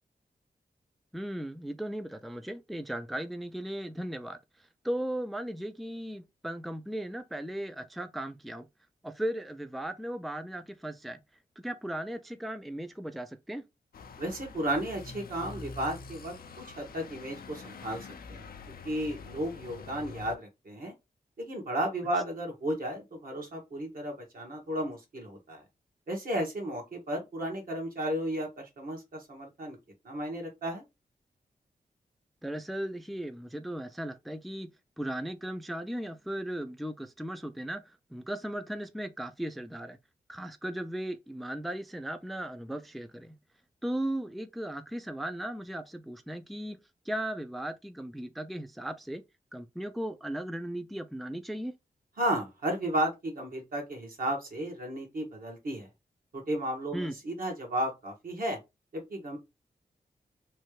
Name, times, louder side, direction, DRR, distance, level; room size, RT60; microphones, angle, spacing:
voice 1, 1.1-4.4 4.8-8.7 9.0-11.2 11.6-13.6 32.4-34.7 35.0-40.0 40.3-43.4 43.8-46.8 47.1-49.2 49.5-51.7 56.9-57.1, right 1 dB, ahead, 0.4 m, -37 dB
sound 1, 13.9-20.4, left 4 dB, 70° left, 0.5 m, -46 dB
voice 2, 14.2-18.5 18.8-20.9 21.4-25.6 26.1-29.8 30.0-30.8 52.2-55.9 56.3-58.6 58.9-59.4, right 1 dB, 65° right, 1.4 m, -34 dB
3.2 x 2.4 x 3.1 m
cardioid pair, 55°, 16 cm